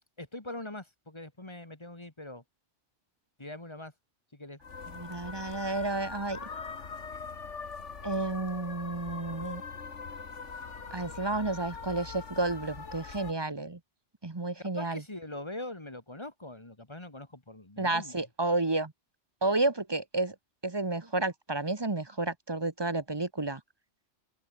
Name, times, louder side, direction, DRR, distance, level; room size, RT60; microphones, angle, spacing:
voice 1, 0.0-2.4 3.4-3.9 4.3-4.6 14.6-18.2, left 1 dB, 25° left, 2.1 m, -42 dB
sound 1, 4.6-13.3, left 5 dB, 85° left, 2.2 m, -42 dB
voice 2, 4.9-6.4 8.0-9.6 10.9-13.8 14.2-15.0 17.8-18.9 19.4-20.3 20.6-23.6, right 2 dB, 25° right, 1.1 m, -31 dB
open air
omnidirectional pair, 1.2 m